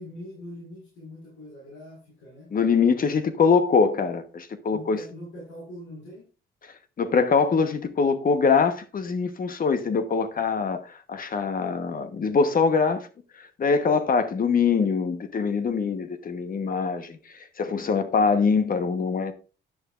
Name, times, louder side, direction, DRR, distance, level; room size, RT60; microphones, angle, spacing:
voice 1, 0.0-2.5 4.7-6.3, left 1 dB, 75° left, 5.2 m, -42 dB
voice 2, 2.5-5.0 7.0-10.8 11.1-13.1 13.6-17.2 17.6-19.3, left 5 dB, 45° left, 1.2 m, -23 dB
11.0 x 9.9 x 2.5 m
cardioid pair, 90°, 20 cm